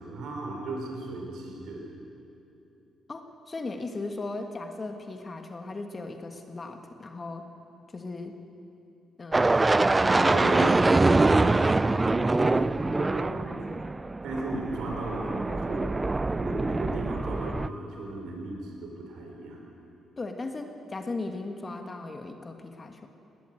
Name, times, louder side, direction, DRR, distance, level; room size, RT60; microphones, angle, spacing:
voice 1, 0.0-1.9 10.0-10.7 10.9-13.6 14.2-15.9 16.3-19.6, right 2 dB, 80° right, 0 dB, 5.2 m, -36 dB
voice 2, 3.1-7.5 7.9-8.3 9.2-9.6 9.8-10.6 20.2-23.1, left 3 dB, 30° left, 5 dB, 1.6 m, -37 dB
sound 1, 9.3-17.7, right 2 dB, 20° right, 0.4 m, -24 dB
19.5 x 19.5 x 7.9 m, 2.8 s
cardioid pair, 90°, 0 cm